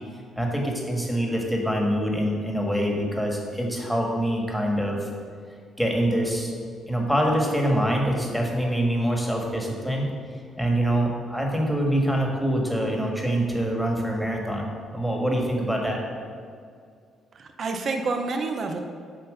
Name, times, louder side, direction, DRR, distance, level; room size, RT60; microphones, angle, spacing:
voice 1, 0.4-5.1 5.8-6.5 6.9-10.1 10.6-16.0, right 1 dB, ahead, 0 dB, 1.6 m, -25 dB
voice 2, 17.3-18.8, right 3 dB, 50° right, 5 dB, 0.6 m, -28 dB
7.7 x 4.2 x 6.6 m, 2.2 s
cardioid pair, 90°, 0 cm